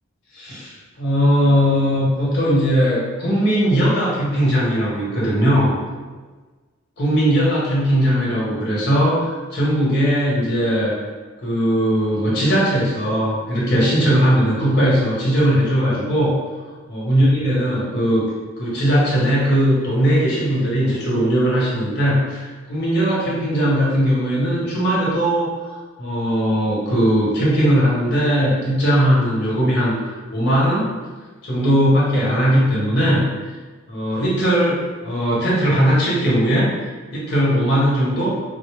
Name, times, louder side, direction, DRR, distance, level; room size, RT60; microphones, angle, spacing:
voice 1, 0.3-5.8 7.0-10.9 11.4-16.3 16.9-18.2 18.6-30.9 31.4-33.2 33.9-38.3, equal, 55° left, -6 dB, 1.2 m, -19 dB
4.1 x 2.1 x 3.2 m, 1.4 s
head